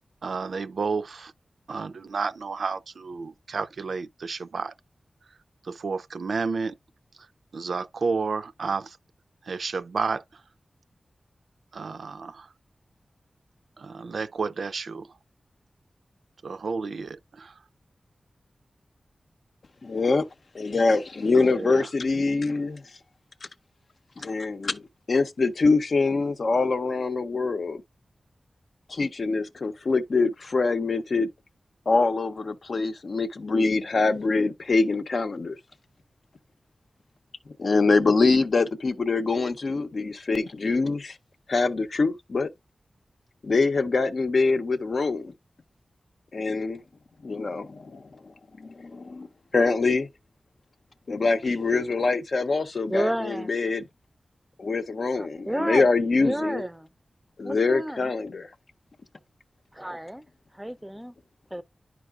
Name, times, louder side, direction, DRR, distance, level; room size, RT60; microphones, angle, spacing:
voice 1, 0.2-1.3 1.7-4.7 5.6-6.7 7.5-9.0 9.5-10.2 11.7-12.5 13.8-15.1 16.4-17.5 21.3-21.9, right 4 dB, 85° right, 0.4 m, -31 dB
voice 2, 19.8-20.3 20.5-22.8 24.2-24.8 25.1-27.8 28.9-31.3 31.9-35.6 37.6-41.2 41.5-42.5 43.4-45.3 46.3-46.8 47.2-49.3 49.5-50.1 51.1-53.9 54.6-56.6 57.4-58.5, left 3 dB, 65° left, 0.7 m, -24 dB
voice 3, 51.4-51.8 52.9-53.5 55.2-55.9 56.2-56.9 57.4-58.1 59.7-60.2 60.6-61.1 61.5-61.6, equal, 5° right, 0.5 m, -31 dB
11.0 x 4.7 x 2.4 m
wide cardioid pair, 110°, 0 cm